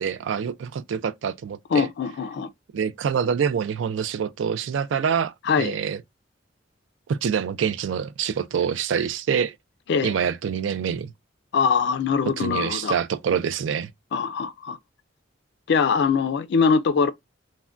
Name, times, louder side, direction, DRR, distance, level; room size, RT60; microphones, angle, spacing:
voice 1, 0.0-1.9 2.7-6.0 7.1-9.5 10.0-11.1 12.4-13.9, right 7 dB, 70° right, 0.3 m, -26 dB
voice 2, 1.7-2.5 5.4-5.8 9.9-10.1 11.5-13.0 14.1-14.8 15.7-17.1, left 5 dB, 60° left, 0.4 m, -22 dB
3.4 x 2.1 x 2.4 m
head